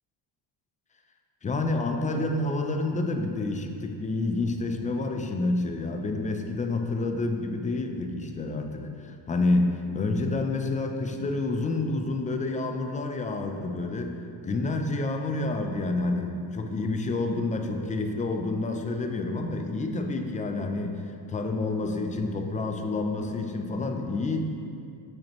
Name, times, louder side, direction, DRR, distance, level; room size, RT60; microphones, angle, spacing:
voice 1, 1.4-14.1 14.4-24.4, left 2 dB, 20° left, 4 dB, 0.4 m, -28 dB
8.2 x 6.4 x 3.0 m, 2.4 s
cardioid pair, 145°, 42 cm